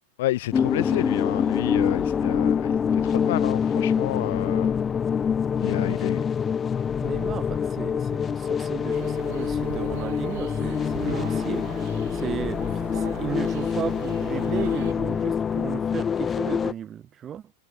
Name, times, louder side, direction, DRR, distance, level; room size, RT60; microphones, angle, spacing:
voice 1, 0.2-4.8 5.6-6.2, left 16 dB, 55° left, 0.9 m, -30 dB
sound 1, 0.5-16.7, left 7 dB, 20° left, 0.6 m, -25 dB
voice 2, 5.8-6.2 7.0-11.7 12.1-17.5, right 9 dB, 25° right, 0.6 m, -35 dB
sound 2, 8.9-14.9, right 20 dB, 50° right, 1.5 m, -40 dB
figure-of-eight pair, 90°, 0 cm